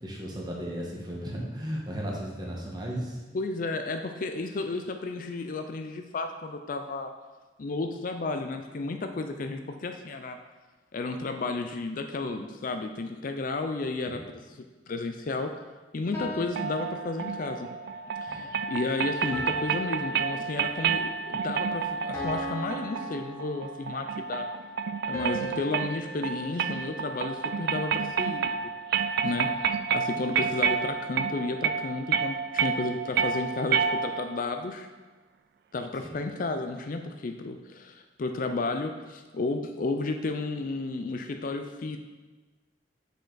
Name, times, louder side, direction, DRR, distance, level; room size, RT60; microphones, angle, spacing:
voice 1, 0.0-3.2 14.1-14.3 18.3-18.6 29.3-29.4 36.0-36.2, equal, 25° right, -2 dB, 1.2 m, -35 dB
voice 2, 3.3-7.1 7.6-10.4 10.9-14.6 14.9-15.6 15.9-17.7 18.2-24.5 25.1-28.7 29.2-34.9 35.7-42.0, left 3 dB, 45° left, 6 dB, 0.4 m, -32 dB
sound 1, 16.1-17.7 19.3-21.0 22.1-24.1 25.1-27.5, right 1 dB, 15° left, 1.3 m, -39 dB
sound 2, 16.6-34.4, right 6 dB, 60° right, 0.3 m, -30 dB
6.5 x 5.1 x 3.9 m, 1.2 s
head